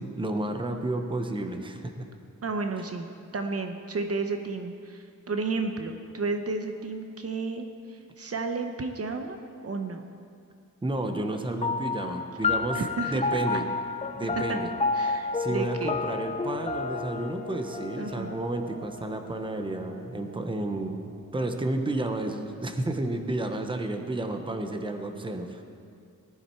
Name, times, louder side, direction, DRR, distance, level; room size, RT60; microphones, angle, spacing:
voice 1, 0.0-1.9 10.8-13.6 14.1-14.7 15.3-25.6, right 2 dB, 15° right, 5 dB, 0.9 m, -31 dB
voice 2, 2.4-9.4 9.6-10.1 12.7-13.1 15.0-15.9 18.0-18.3, right 3 dB, 50° right, 5 dB, 0.8 m, -32 dB
sound 1, 11.6-20.4, left 4 dB, 20° left, 0.5 m, -31 dB
19.5 x 11.5 x 4.5 m, 2.3 s
wide cardioid pair, 165°, 32 cm